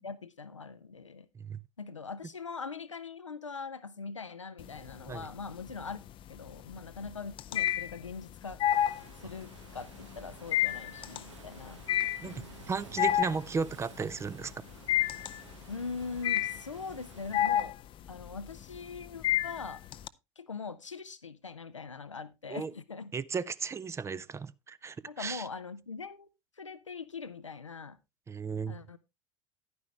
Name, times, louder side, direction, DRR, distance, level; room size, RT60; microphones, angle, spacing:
voice 1, 0.0-1.3 1.8-6.0 6.3-8.6 9.2-11.8 12.2-12.6 15.7-17.8 18.1-19.8 20.4-23.1 25.1-26.3 26.6-28.0 28.7-29.0, left 5 dB, 85° left, 0.5 m, -42 dB
sound 1, 4.6-5.2 5.6-20.1, left 12 dB, 35° left, 0.5 m, -30 dB
Waves surf, 8.7-17.4, right 6 dB, 75° right, 1.1 m, -53 dB
voice 2, 12.2-14.5 22.5-22.7 23.1-25.5 28.3-28.8, right 5 dB, 20° right, 0.5 m, -35 dB
10.5 x 9.5 x 3.2 m
figure-of-eight pair, 75°, 15 cm